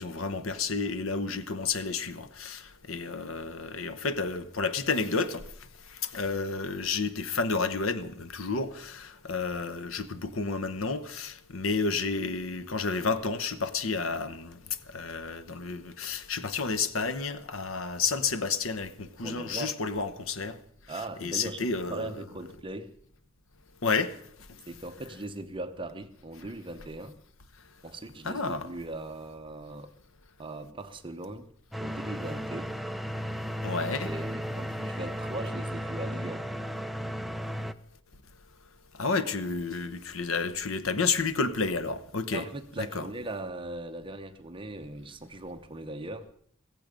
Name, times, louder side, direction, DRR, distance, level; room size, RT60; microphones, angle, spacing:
voice 1, 0.0-5.4 6.0-14.6 14.9-20.6 21.2-22.1 23.8-24.1 28.2-28.7 33.6-34.1 39.0-42.4 42.8-43.0, left 4 dB, 80° left, 1.0 m, -31 dB
voice 2, 19.2-19.8 20.9-22.9 24.7-27.2 27.8-29.9 30.4-31.5 31.8-32.7 34.0-36.4 42.3-46.3, right 2 dB, 25° right, 1.0 m, -39 dB
sound 1, 31.7-37.7, equal, ahead, 0.5 m, -35 dB
15.5 x 15.5 x 5.2 m
head